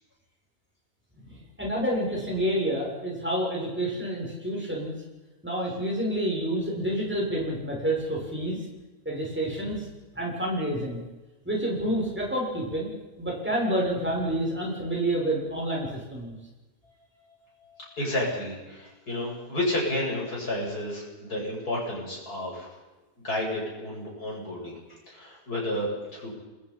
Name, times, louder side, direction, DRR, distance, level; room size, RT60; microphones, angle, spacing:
voice 1, 1.6-4.9 5.4-8.6 9.1-9.9 10.1-11.0 11.4-12.9 13.2-16.3, right 1 dB, 5° right, -3 dB, 7.1 m, -28 dB
voice 2, 17.6-22.8 23.2-26.3, left 1 dB, 85° left, -3 dB, 8.5 m, -31 dB
27.5 x 21.0 x 5.8 m, 1.1 s
omnidirectional pair, 1.6 m